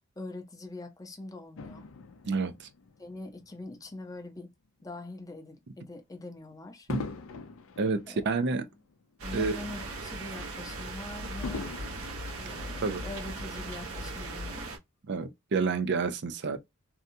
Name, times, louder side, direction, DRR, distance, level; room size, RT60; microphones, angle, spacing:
voice 1, 0.2-1.9 3.0-4.5 4.8-6.9 8.1-8.7 9.2-11.7 12.4-14.8, left 2 dB, 15° left, 0.6 m, -43 dB
Fireworks, 1.6-4.2 4.8-5.0 6.9-9.4 9.8-9.9 11.4-13.3 14.0-14.1, left 4 dB, 65° left, 0.4 m, -42 dB
voice 2, 2.2-2.7 6.9-7.0 7.8-8.7 9.3-9.6 12.8-13.0 15.0-16.6, right 4 dB, 55° right, 0.5 m, -29 dB
sound 1, 9.2-14.8, right 2 dB, 75° right, 0.9 m, -38 dB
2.7 x 2.3 x 2.6 m
head